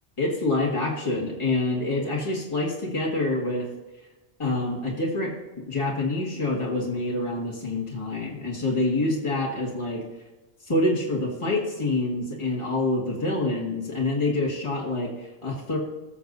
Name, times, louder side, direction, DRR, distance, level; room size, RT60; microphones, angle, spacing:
voice 1, 0.2-3.7 4.4-5.3 5.7-10.0 10.7-15.8, left 2 dB, 25° left, -3 dB, 2.0 m, -26 dB
19.5 x 7.0 x 2.7 m, 1.1 s
omnidirectional pair, 1.1 m